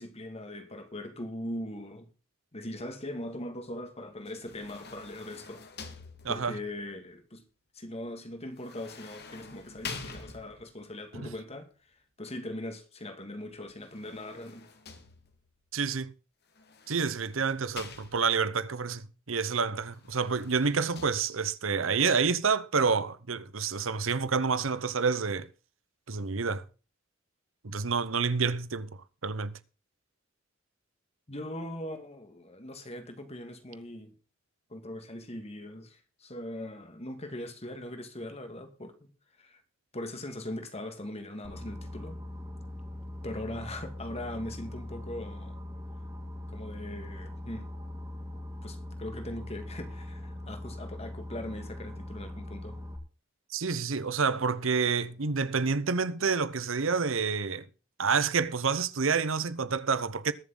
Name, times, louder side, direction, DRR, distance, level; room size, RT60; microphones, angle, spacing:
voice 1, 0.0-2.1 2.5-5.6 6.3-7.4 7.7-11.7 12.2-14.7 31.3-34.1 34.7-39.1 39.4-39.6 39.9-42.2 43.2-45.6 46.5-47.7 48.6-52.8, left 1 dB, 30° left, 2.3 m, -40 dB
sound 1, 4.2-6.7 8.6-10.8 13.7-15.5 16.5-18.5 19.9-21.1, left 4 dB, 55° left, 2.1 m, -46 dB
voice 2, 6.2-6.6 11.1-11.3 15.7-16.1 16.9-25.5 26.1-26.6 27.6-29.6 53.5-57.7 58.0-60.3, right 5 dB, 85° right, 1.0 m, -28 dB
Boat Water vehicle, 41.4-53.0, left 1 dB, 20° right, 3.2 m, -41 dB
21.5 x 7.4 x 3.9 m
head